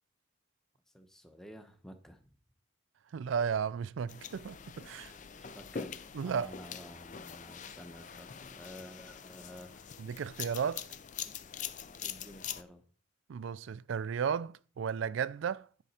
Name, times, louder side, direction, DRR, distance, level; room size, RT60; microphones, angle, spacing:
voice 1, 0.9-2.3 5.4-9.9 12.0-12.8, equal, ahead, 0.9 m, -51 dB
voice 2, 3.1-5.1 6.1-6.5 10.0-10.9 13.3-15.7, right 7 dB, 75° right, 0.4 m, -34 dB
sound 1, 4.1-12.6, left 7 dB, 40° left, 0.5 m, -44 dB
11.0 x 5.9 x 4.2 m
head